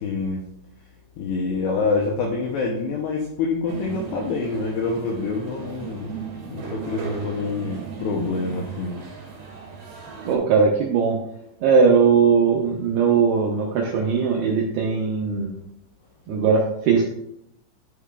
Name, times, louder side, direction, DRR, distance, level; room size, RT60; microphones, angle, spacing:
voice 1, 0.0-0.5 1.2-6.1 6.5-9.0, left 4 dB, 80° left, 0 dB, 2.4 m, -26 dB
sound 1, 3.7-10.4, right 6 dB, 60° right, 3.0 m, -36 dB
voice 2, 10.3-11.2 11.6-15.5 16.3-17.0, right 5 dB, 80° right, -1 dB, 2.4 m, -19 dB
11.0 x 6.6 x 2.4 m, 0.75 s
omnidirectional pair, 5.7 m